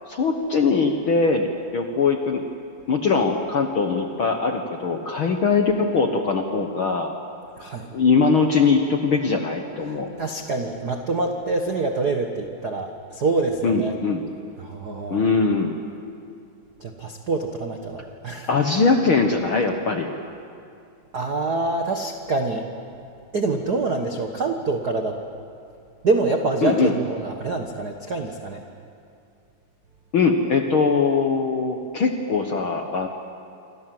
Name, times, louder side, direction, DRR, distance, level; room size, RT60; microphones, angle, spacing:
voice 1, 0.1-1.5 1.7-2.4 2.9-7.1 7.9-10.1 13.6-14.2 15.1-15.7 18.5-20.1 26.6-26.9 30.1-33.1, left 4 dB, 55° left, 4 dB, 1.4 m, -21 dB
voice 2, 7.6-7.9 9.9-13.9 14.6-15.3 16.8-18.5 21.1-22.7 23.3-25.2 26.0-28.6, right 3 dB, 55° right, 4 dB, 1.0 m, -26 dB
27.5 x 25.5 x 7.8 m, 2.5 s
omnidirectional pair, 4.0 m